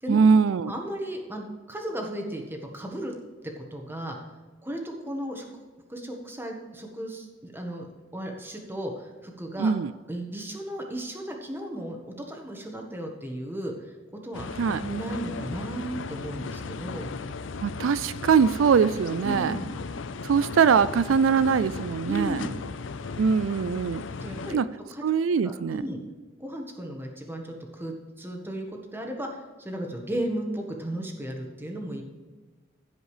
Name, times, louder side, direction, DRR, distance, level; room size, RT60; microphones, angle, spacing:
voice 1, 0.1-0.7 9.6-9.9 14.6-14.8 17.6-19.6 20.2-22.4 23.2-24.0 24.5-24.6 25.0-25.8, right 6 dB, 85° right, 15 dB, 0.4 m, -22 dB
voice 2, 0.7-3.1 3.6-4.2 4.6-5.5 5.9-9.7 10.1-13.9 14.2-14.5 14.8-17.1 19.2-19.7 22.0-22.6 24.2-24.6 24.9-25.0 25.4-26.0 26.4-32.0, right 1 dB, 10° right, 2 dB, 1.6 m, -35 dB
sound 1, 14.3-24.6, left 4 dB, 75° left, 0.5 m, -36 dB
16.0 x 5.3 x 4.9 m, 1.3 s
head